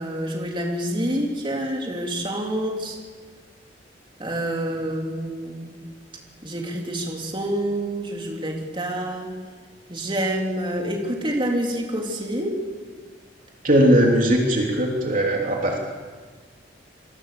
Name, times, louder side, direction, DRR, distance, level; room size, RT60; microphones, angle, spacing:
voice 1, 0.0-3.0 4.2-5.7 6.4-9.3 9.9-12.6, right 1 dB, 25° right, 0 dB, 3.7 m, -27 dB
voice 2, 13.6-15.8, right 1 dB, 45° right, 0 dB, 3.2 m, -19 dB
27.5 x 22.5 x 7.0 m, 1.5 s
head